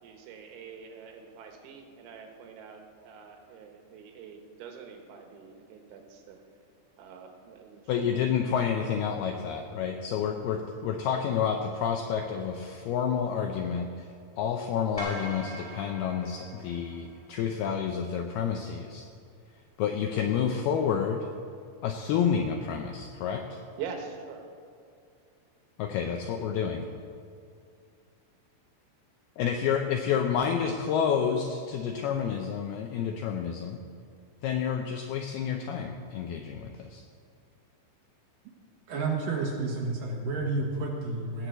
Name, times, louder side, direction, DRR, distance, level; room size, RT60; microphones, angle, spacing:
voice 1, 0.0-6.4 7.0-8.2 23.8-24.5, right 6 dB, 80° right, 3 dB, 3.7 m, -44 dB
voice 2, 7.9-14.1 14.4-19.0 19.8-21.3 21.8-23.6 25.8-26.9 29.4-33.8 34.4-37.0, left 7 dB, 80° left, 4 dB, 2.2 m, -29 dB
sound 1, 15.0-17.3, right 1 dB, 20° left, 0.8 m, -41 dB
voice 3, 38.9-41.5, right 3 dB, 60° right, -1 dB, 2.5 m, -30 dB
18.5 x 6.2 x 8.0 m, 2.3 s
omnidirectional pair, 5.3 m